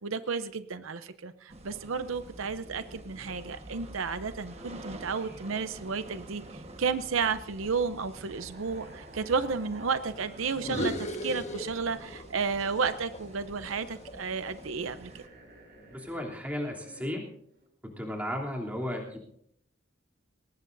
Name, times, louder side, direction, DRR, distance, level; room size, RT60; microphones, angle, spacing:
voice 1, 0.0-15.2, right 5 dB, 75° right, 11 dB, 0.7 m, -32 dB
sound 1, 1.5-15.3, right 1 dB, 30° right, 1.4 m, -48 dB
sound 2, 1.8-2.3 2.6-3.2 4.4-7.2 7.5-10.7 11.1-17.1 17.5-17.7, right 2 dB, 50° right, 6.2 m, -53 dB
sound 3, 10.5-12.3 12.6-14.8, equal, 35° left, 1.4 m, -37 dB
voice 2, 15.9-17.3 17.8-19.2, left 1 dB, 5° right, -1 dB, 3.1 m, -34 dB
21.5 x 19.0 x 2.7 m, 0.70 s
head